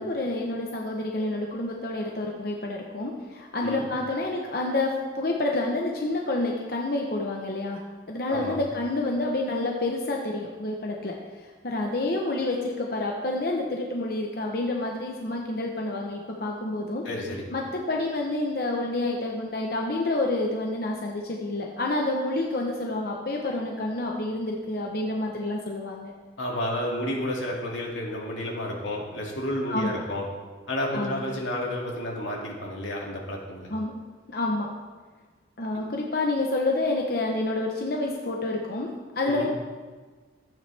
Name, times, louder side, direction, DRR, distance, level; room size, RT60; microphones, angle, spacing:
voice 1, 0.0-17.0 17.5-26.1 29.7-30.2 30.9-31.2 33.7-33.9 34.3-34.7 35.6-39.5, left 2 dB, 55° left, 0 dB, 0.9 m, -28 dB
voice 2, 17.0-17.5 26.4-30.2 30.7-33.7 39.3-39.5, left 1 dB, 90° left, -2 dB, 2.3 m, -31 dB
14.0 x 9.1 x 3.4 m, 1.4 s
head